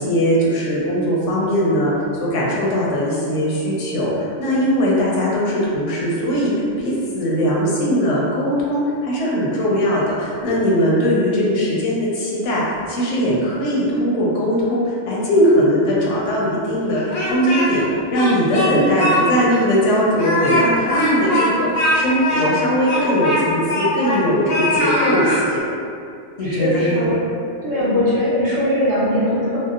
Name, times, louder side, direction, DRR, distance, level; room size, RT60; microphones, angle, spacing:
voice 1, 0.0-1.9 2.2-17.8 18.1-25.6 26.4-27.1 27.8-28.0, equal, 85° left, -5 dB, 1.0 m, -20 dB
voice 2, 11.5-11.8 21.2-21.6 26.4-27.2 27.6-29.6, left 1 dB, 50° right, -9 dB, 0.8 m, -21 dB
Speech, 16.9-17.8 18.1-19.2 19.5-19.6 20.1-24.2 24.5-25.4, left 1 dB, 60° left, 0.4 m, -21 dB
2.7 x 2.0 x 2.4 m, 2.4 s
omnidirectional pair, 1.2 m